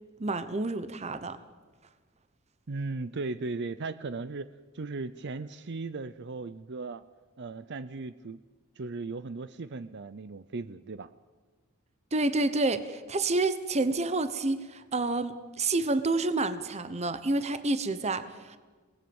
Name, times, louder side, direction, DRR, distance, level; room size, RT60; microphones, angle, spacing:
voice 1, 0.2-1.4 12.1-18.6, right 2 dB, 30° right, 11 dB, 1.0 m, -29 dB
voice 2, 2.7-7.0 7.4-8.4 8.8-11.1, right 3 dB, 55° right, 13 dB, 0.6 m, -37 dB
28.0 x 18.5 x 7.2 m, 1.4 s
head